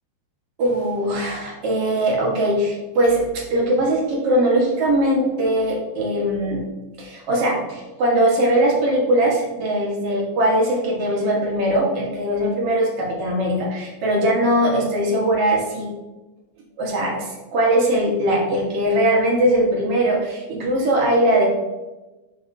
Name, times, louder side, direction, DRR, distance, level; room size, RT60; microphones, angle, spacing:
voice 1, 0.6-6.6 7.0-15.9 16.8-21.5, right 1 dB, 55° right, -2 dB, 1.7 m, -20 dB
11.0 x 4.1 x 2.7 m, 1.1 s
omnidirectional pair, 4.4 m